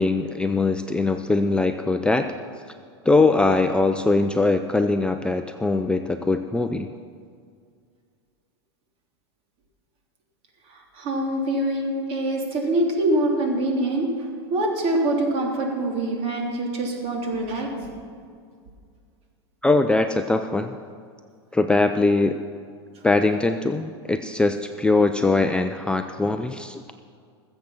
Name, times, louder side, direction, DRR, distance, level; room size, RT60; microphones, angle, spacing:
voice 1, 0.0-2.3 3.0-6.9 19.6-20.8 21.5-22.4 23.0-26.8, left 3 dB, 5° left, 7 dB, 0.5 m, -21 dB
voice 2, 10.7-14.1 14.5-17.7, right 1 dB, 45° right, 0 dB, 3.4 m, -24 dB
20.5 x 7.7 x 5.9 m, 2.2 s
hypercardioid pair, 110°, 14 cm